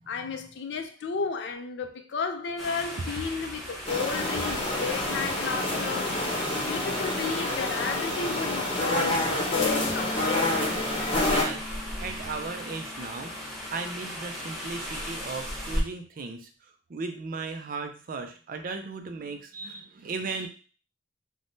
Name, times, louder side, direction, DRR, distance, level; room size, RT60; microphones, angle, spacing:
voice 1, 0.1-10.6, left 5 dB, 65° left, 0.4 m, -33 dB
sound 1, 2.6-15.8, equal, ahead, 0.8 m, -37 dB
sound 2, 3.9-11.5, left 1 dB, 30° left, 0.8 m, -28 dB
sound 3, 9.5-15.8, left 2 dB, 80° left, 0.8 m, -42 dB
voice 2, 11.2-11.7 12.0-16.5 16.9-20.5, right 4 dB, 50° right, 0.4 m, -36 dB
3.4 x 2.1 x 2.6 m
head